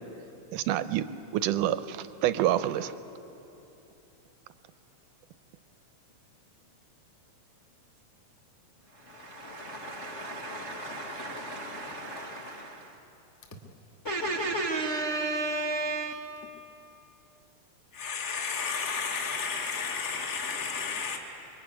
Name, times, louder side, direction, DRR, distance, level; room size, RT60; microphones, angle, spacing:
voice 1, 0.5-1.1 1.3-2.9, right 12 dB, 80° right, 13 dB, 2.2 m, -27 dB
voice 2, 8.9-13.0 14.0-16.3, right 2 dB, 90° left, -1 dB, 0.6 m, -34 dB
voice 3, 17.9-21.2, left 5 dB, 10° left, 1 dB, 1.2 m, -32 dB
25.5 x 23.0 x 9.5 m, 2.9 s
omnidirectional pair, 3.8 m